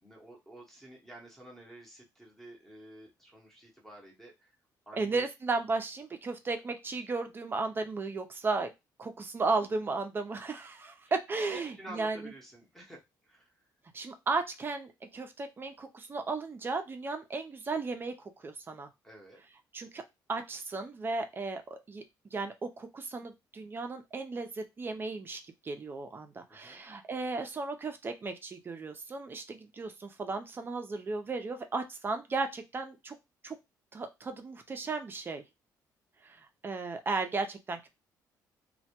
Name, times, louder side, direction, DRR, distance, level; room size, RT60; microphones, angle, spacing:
voice 1, 0.0-4.5 4.9-5.3 11.5-13.5 19.0-19.4 26.5-26.9, right 1 dB, 5° left, 0 dB, 0.7 m, -50 dB
voice 2, 4.9-8.7 9.0-12.3 13.9-18.9 19.7-20.0 20.3-22.0 22.3-33.1 33.4-33.6 33.9-35.4 36.2-37.9, right 3 dB, 30° right, 7 dB, 0.4 m, -35 dB
2.1 x 2.1 x 2.8 m, 0.22 s
cardioid pair, 110°, 8 cm